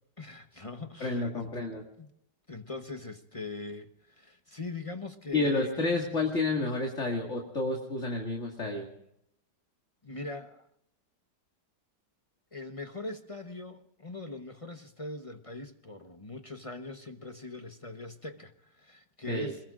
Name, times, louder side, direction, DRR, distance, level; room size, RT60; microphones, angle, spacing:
voice 1, 0.2-1.6 2.0-2.1 2.5-5.8 10.0-10.7 12.5-19.6, left 3 dB, 25° left, 8 dB, 0.7 m, -41 dB
voice 2, 1.0-1.8 5.3-8.9 19.3-19.5, left 2 dB, 45° left, 0 dB, 2.4 m, -30 dB
27.0 x 21.5 x 2.5 m, 0.74 s
omnidirectional pair, 1.8 m